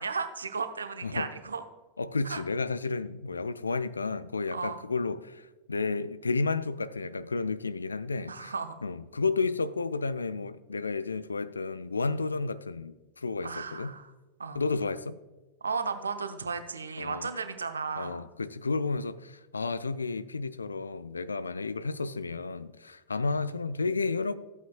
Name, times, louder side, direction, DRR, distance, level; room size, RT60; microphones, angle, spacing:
voice 1, 0.0-1.6 2.2-2.4 4.5-4.9 8.3-8.7 13.4-14.1 14.4-14.6 15.6-18.3, right 5 dB, 75° right, 0.7 m, -34 dB
voice 2, 2.0-8.5 8.8-13.9 14.5-15.2 17.0-17.3 18.0-24.4, left 4 dB, 75° left, 0.4 m, -32 dB
14.0 x 8.3 x 2.3 m
figure-of-eight pair, 90°, 0 cm